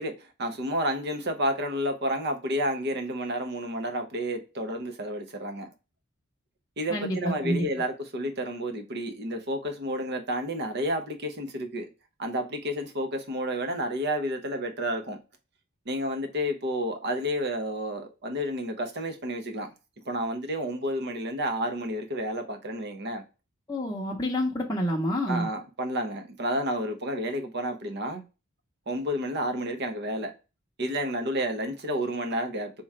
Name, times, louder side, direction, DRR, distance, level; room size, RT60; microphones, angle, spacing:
voice 1, 0.0-5.7 6.8-11.9 12.2-15.2 15.9-19.7 20.0-23.2 25.3-28.2 28.9-30.3 30.8-32.7, equal, 55° right, 0.9 m, -30 dB
voice 2, 6.9-7.7 23.7-25.5, equal, 15° left, 0.7 m, -28 dB
3.6 x 3.1 x 4.1 m
head